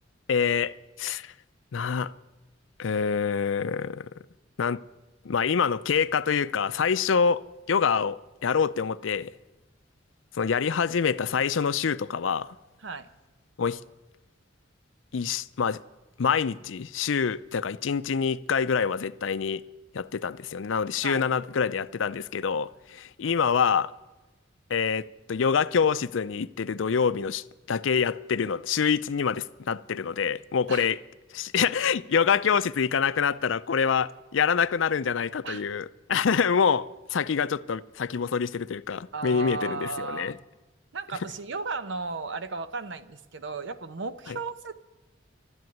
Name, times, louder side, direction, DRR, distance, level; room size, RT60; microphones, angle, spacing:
voice 1, 0.3-1.3 1.7-2.1 2.8-4.1 4.6-4.8 5.2-9.3 10.3-12.6 13.6-13.8 15.1-15.8 16.2-19.6 19.9-23.9 24.7-31.0 31.3-40.4 44.3-44.4, left 6 dB, 75° left, 0.5 m, -26 dB
voice 2, 39.1-40.4 40.9-44.9, right 4 dB, 70° right, 0.8 m, -35 dB
12.5 x 10.5 x 9.3 m
head